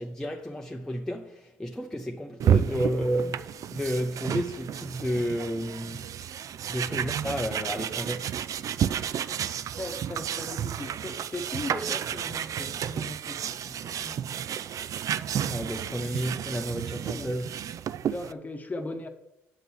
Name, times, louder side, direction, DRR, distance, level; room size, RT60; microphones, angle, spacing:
voice 1, 0.0-6.1 6.7-8.3 15.5-17.5, equal, 10° left, 0.8 m, -31 dB
sound 1, 2.4-18.3, right 9 dB, 55° right, 0.4 m, -31 dB
voice 2, 9.7-14.4 15.6-15.7 17.0-17.3 18.0-19.1, left 2 dB, 25° left, 1.1 m, -38 dB
7.4 x 5.3 x 6.2 m
hypercardioid pair, 60°, 7 cm